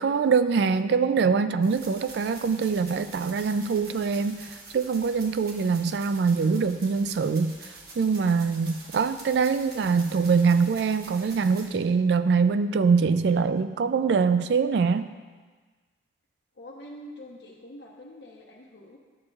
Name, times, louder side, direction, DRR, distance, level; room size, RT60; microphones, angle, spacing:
voice 1, 0.0-7.5 8.0-15.1, right 5 dB, 75° right, 12 dB, 0.3 m, -23 dB
sound 1, 1.6-11.7, right 3 dB, 60° right, 1.1 m, -46 dB
voice 2, 16.5-19.0, left 1 dB, 85° left, -3 dB, 0.9 m, -45 dB
11.5 x 7.5 x 2.4 m, 1.4 s
head